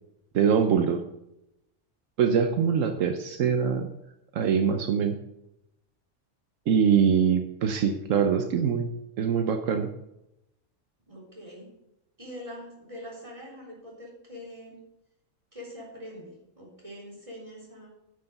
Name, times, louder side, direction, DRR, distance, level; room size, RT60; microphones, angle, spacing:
voice 1, 0.3-1.0 2.2-3.9 4.3-5.1 6.7-8.9 9.2-9.9, right 7 dB, 80° right, 6 dB, 1.2 m, -23 dB
voice 2, 11.1-11.7 12.2-14.8 15.5-17.9, equal, 25° right, -3 dB, 3.9 m, -43 dB
9.4 x 6.9 x 6.6 m, 0.86 s
omnidirectional pair, 1.3 m